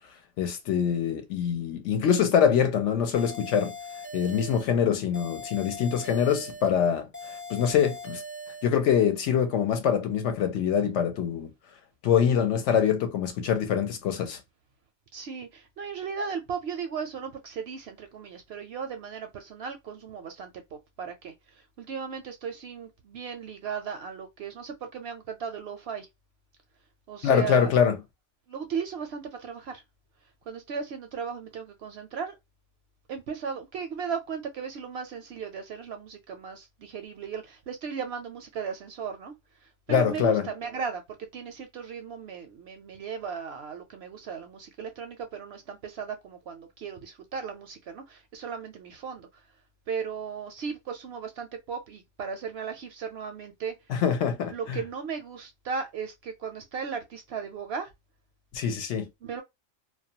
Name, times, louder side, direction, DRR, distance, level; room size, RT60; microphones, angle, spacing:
voice 1, 0.4-3.7 4.1-8.2 8.6-11.5 12.0-14.4 27.2-28.0 39.9-40.5 53.9-54.8 58.5-59.1, left 8 dB, 70° left, 0.8 m, -24 dB
sound 1, 3.1-4.7 5.1-6.7 7.1-8.7, left 1 dB, 20° left, 0.3 m, -40 dB
voice 2, 15.1-20.5 21.0-21.3 21.8-26.1 27.1-27.7 28.5-29.8 30.5-32.3 33.1-39.3 39.9-41.0 41.3-49.3 49.9-53.7 54.5-57.9 59.2-59.4, right 6 dB, 65° right, 0.7 m, -36 dB
2.3 x 2.1 x 2.7 m
omnidirectional pair, 1.4 m